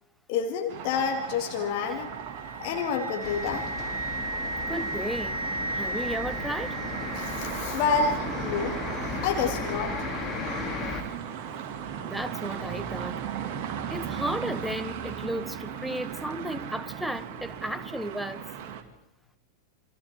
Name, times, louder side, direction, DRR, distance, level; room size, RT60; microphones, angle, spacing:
voice 1, 0.3-2.1 2.6-3.7 7.2-8.8 9.2-10.0, left 5 dB, 45° left, 3 dB, 2.4 m, -28 dB
sound 1, 0.7-18.8, right 8 dB, 40° right, 2.3 m, -37 dB
Wind instrument woodwind instrument, 2.0-7.9, right 3 dB, 65° right, 1.1 m, -35 dB
sound 2, 3.2-11.0, left 5 dB, 25° left, 3.1 m, -36 dB
voice 2, 4.7-5.4 5.7-6.8 12.0-13.2 13.9-18.4, equal, ahead, 12 dB, 1.0 m, -34 dB
28.5 x 25.5 x 3.7 m, 0.87 s
figure-of-eight pair, 90°, 0 cm